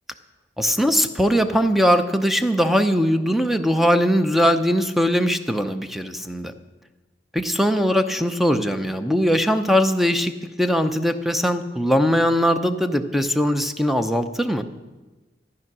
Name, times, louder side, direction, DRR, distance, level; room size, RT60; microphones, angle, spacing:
voice 1, 0.6-6.5 7.3-10.3 10.6-14.6, equal, ahead, 9 dB, 0.6 m, -20 dB
14.0 x 9.6 x 6.1 m, 1.2 s
head